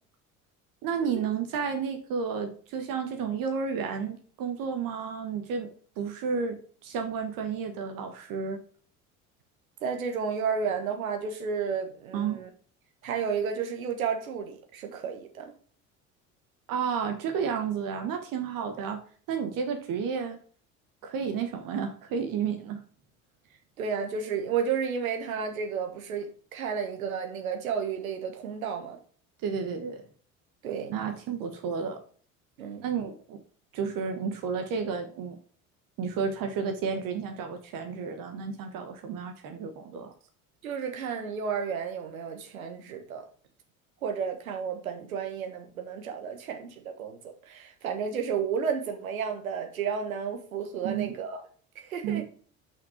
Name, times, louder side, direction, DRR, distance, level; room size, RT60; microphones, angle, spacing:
voice 1, 0.8-5.7 6.0-8.6 12.1-12.4 16.7-19.0 19.3-20.4 21.0-22.8 29.4-30.0 30.9-32.0 32.8-33.4 33.7-35.4 36.0-40.1 50.8-51.1 52.0-52.2, right 6 dB, 50° right, 1.4 m, -31 dB
voice 2, 9.8-12.5 13.0-15.5 23.8-29.0 30.6-30.9 32.6-32.8 40.6-43.3 44.0-51.4 51.7-52.3, right 6 dB, 75° right, 1.4 m, -32 dB
6.0 x 5.7 x 5.0 m
figure-of-eight pair, 60°, 42 cm